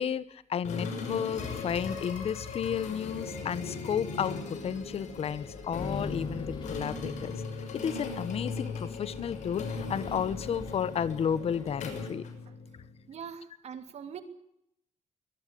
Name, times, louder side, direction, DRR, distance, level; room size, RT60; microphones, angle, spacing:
voice 1, 0.0-7.4 7.8-12.2, left 8 dB, 55° left, 17 dB, 1.3 m, -32 dB
sound 1, 0.6-12.9, left 4 dB, 90° left, 6.3 m, -38 dB
Wind, 4.7-12.0, left 3 dB, 40° left, 5.4 m, -47 dB
voice 2, 13.1-14.2, right 7 dB, 65° right, 9 dB, 2.8 m, -42 dB
23.5 x 19.0 x 8.6 m, 0.77 s
wide cardioid pair, 160°, 12 cm